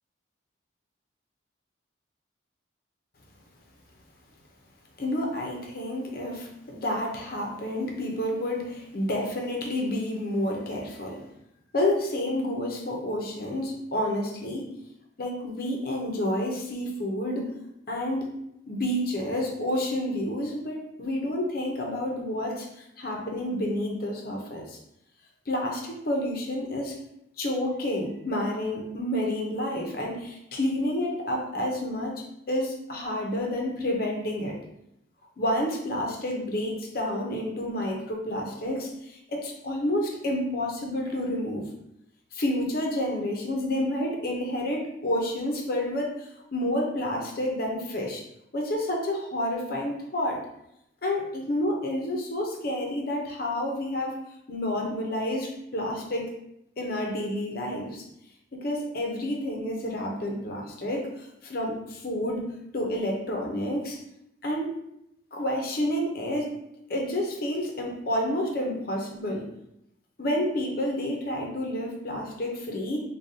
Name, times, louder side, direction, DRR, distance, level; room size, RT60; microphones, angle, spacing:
voice 1, 5.0-11.2 11.7-14.7 15.2-17.5 17.9-18.3 18.7-24.8 25.5-27.0 27.4-34.6 35.4-41.6 42.3-48.2 48.5-50.4 51.0-54.1 54.5-56.3 56.8-58.0 58.5-62.5 62.7-64.0 64.4-64.7 65.3-66.5 66.9-69.5 70.2-73.0, left 1 dB, 50° left, 0 dB, 0.6 m, -29 dB
5.0 x 2.3 x 2.7 m, 0.81 s
head